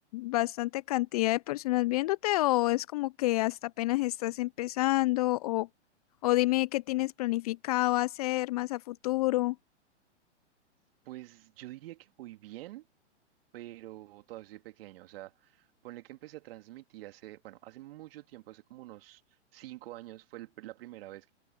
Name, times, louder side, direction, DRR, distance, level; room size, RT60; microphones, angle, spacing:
voice 1, 0.1-5.7 6.2-9.6, left 18 dB, 35° left, 0.4 m, -28 dB
voice 2, 11.0-12.9 13.5-19.2 19.5-21.3, right 16 dB, 55° right, 2.8 m, -47 dB
hypercardioid pair, 120°, 36 cm